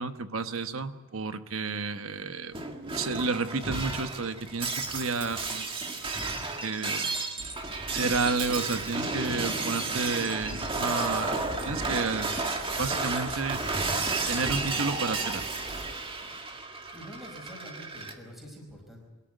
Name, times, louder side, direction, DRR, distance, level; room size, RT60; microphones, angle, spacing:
voice 1, 0.0-2.6 2.9-6.0 6.6-7.1 7.9-12.3 12.8-13.6 14.3-15.5, right 4 dB, 65° right, 9 dB, 1.2 m, -31 dB
Shatter, 2.5-18.1, right 3 dB, 25° right, 2.0 m, -32 dB
voice 2, 16.5-19.1, equal, ahead, -1 dB, 5.0 m, -47 dB
23.5 x 13.0 x 9.3 m, 1.3 s
head